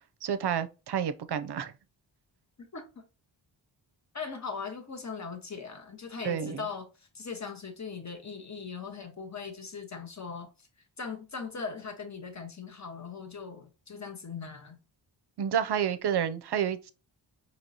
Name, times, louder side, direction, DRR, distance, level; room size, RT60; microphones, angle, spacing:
voice 1, 0.2-1.7 6.2-6.6 15.4-16.9, right 8 dB, 60° right, 0.6 m, -30 dB
voice 2, 2.7-3.0 4.1-10.5 11.0-14.8, left 5 dB, 35° left, 1.2 m, -39 dB
4.5 x 2.9 x 2.7 m
cardioid pair, 75°, 46 cm